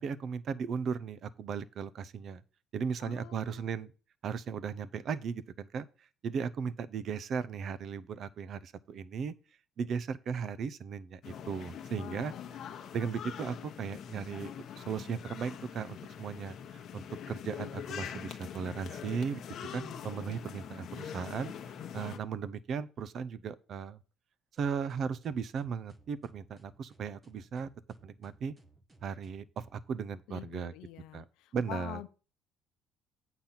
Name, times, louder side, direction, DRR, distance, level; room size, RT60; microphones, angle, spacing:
voice 1, 0.0-2.4 2.7-3.9 4.2-5.9 6.2-9.3 9.8-12.3 12.9-19.4 19.7-24.0 24.6-27.7 28.0-28.5 29.0-30.7 31.1-31.2 31.5-32.0, right 6 dB, 40° right, 0.5 m, -36 dB
voice 2, 3.0-3.8 11.9-12.5 30.3-32.1, left 15 dB, 85° left, 0.7 m, -46 dB
sound 1, 11.2-22.2, left 8 dB, 45° left, 0.9 m, -43 dB
sound 2, 24.6-29.8, right 2 dB, 15° right, 0.7 m, -61 dB
8.8 x 3.9 x 5.8 m
cardioid pair, 165°, 0 cm